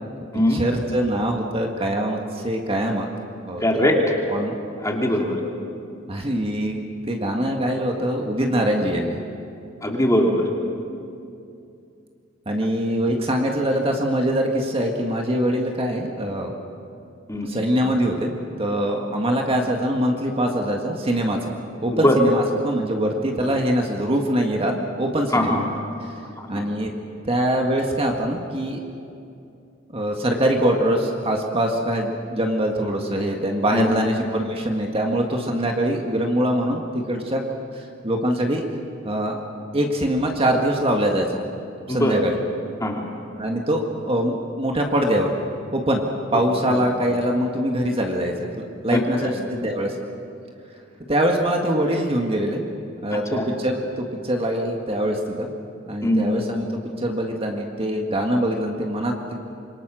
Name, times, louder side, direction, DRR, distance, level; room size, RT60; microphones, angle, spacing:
voice 1, 0.5-3.1 3.4-3.6 4.3-4.5 6.1-9.2 12.5-16.5 17.4-21.4 21.8-25.6 26.5-26.9 27.2-28.8 29.9-37.4 37.7-38.7 39.1-39.4 39.7-41.4 41.9-42.4 43.4-45.3 45.7-46.0 46.3-50.0 51.1-52.6 53.0-53.8 54.2-55.5 55.9-59.4, right 1 dB, 30° right, 1 dB, 1.8 m, -23 dB
voice 2, 3.6-4.0 4.8-5.4 9.8-10.5 17.3-17.5 22.0-22.2 25.3-25.6 26.4-26.6 33.7-34.0 41.9-42.1 42.8-43.1 46.3-46.4 48.9-49.3 53.1-53.4 56.0-56.2, left 1 dB, 15° left, 0 dB, 2.7 m, -21 dB
26.5 x 23.5 x 6.4 m, 2.6 s
head